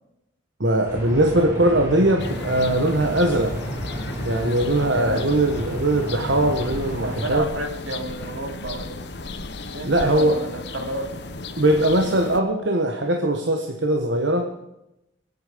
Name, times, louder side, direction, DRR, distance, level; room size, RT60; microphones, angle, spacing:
voice 1, 0.6-3.6 4.2-7.5 9.8-10.4 11.6-14.5, right 1 dB, 70° right, 3 dB, 1.4 m, -20 dB
sound 1, 0.8-7.3, right 1 dB, 15° right, 5.8 m, -32 dB
sound 2, 2.2-12.4, left 3 dB, 60° left, 1.1 m, -35 dB
voice 2, 7.0-9.0 9.7-11.1 14.6-14.7, right 1 dB, 85° right, 3 dB, 3.0 m, -30 dB
24.5 x 8.8 x 5.2 m, 0.86 s
head